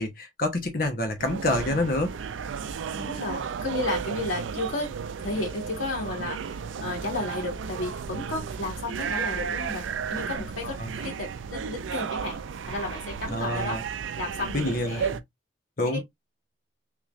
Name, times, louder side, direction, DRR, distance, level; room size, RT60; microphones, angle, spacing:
voice 1, 0.0-2.1 10.6-10.9 13.3-13.8 14.5-15.2 15.8-16.0, left 1 dB, 50° left, 1.0 m, -27 dB
sound 1, 1.2-15.2, right 6 dB, 80° right, 0.4 m, -33 dB
voice 2, 3.0-13.8 14.2-15.1 15.8-16.0, left 2 dB, 80° left, 2.1 m, -33 dB
3.7 x 3.2 x 2.4 m
head